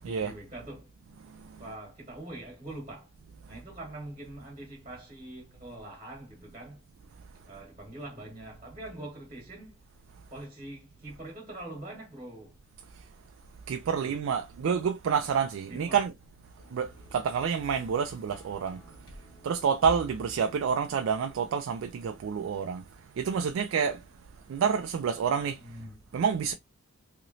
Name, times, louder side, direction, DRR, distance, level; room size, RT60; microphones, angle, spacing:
voice 1, 0.0-0.9 1.6-3.1 3.5-6.8 7.5-9.8 10.3-12.6 13.8-14.2 15.7-16.0 25.6-26.0, right 1 dB, 30° right, 1.1 m, -43 dB
voice 2, 1.3-1.6 12.9-13.1 13.7-16.1 16.7-18.8 19.4-22.8 23.2-24.0 24.5-25.6 26.1-26.5, right 6 dB, 70° right, 0.3 m, -28 dB
sound 1, 16.6-21.0, left 1 dB, 70° left, 1.1 m, -49 dB
2.9 x 2.9 x 2.7 m
head